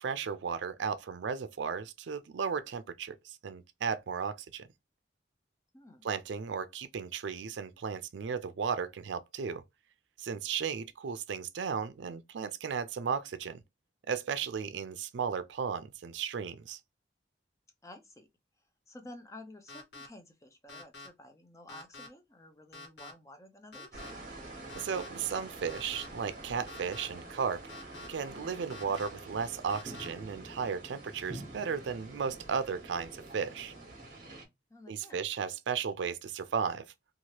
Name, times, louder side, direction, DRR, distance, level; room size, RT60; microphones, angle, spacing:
voice 1, 0.0-4.7 6.0-9.6 10.2-13.6 14.1-16.8 24.7-27.7 28.1-33.7 34.9-36.9, right 6 dB, 80° right, 0.4 m, -35 dB
voice 2, 17.8-18.3 18.9-24.0 34.7-35.2, left 1 dB, 15° left, 0.5 m, -51 dB
sound 1, 19.7-20.1 20.7-21.1 21.7-22.1 22.7-23.1 23.7-24.1 24.7-25.1 25.7-26.1 26.7-27.0 27.7-28.1 28.7-29.1 29.7-30.1, left 3 dB, 70° left, 1.0 m, -47 dB
sound 2, 23.9-34.4, right 2 dB, 45° right, 1.1 m, -47 dB
3.0 x 2.4 x 2.8 m
head